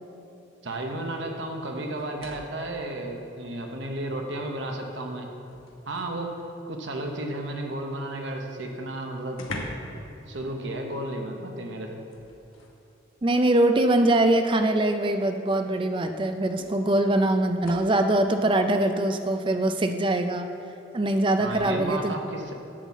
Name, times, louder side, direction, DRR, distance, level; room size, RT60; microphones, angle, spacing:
voice 1, 0.6-5.3 5.9-6.3 6.7-9.4 10.3-12.0 21.4-22.5, right 1 dB, 65° right, 2 dB, 0.9 m, -33 dB
sound 1, 2.0-2.7 4.0-4.1 4.6-6.2 8.3-8.4 8.6-8.7 9.3-10.0 10.3-10.6 12.1-12.8 14.0-14.1 15.6-15.7 16.6-18.1 21.4-21.7, left 2 dB, 85° left, 1.1 m, -42 dB
voice 2, 13.2-20.5 20.9-22.2, right 1 dB, 25° right, 7 dB, 0.4 m, -23 dB
11.0 x 4.0 x 7.2 m, 2.8 s
head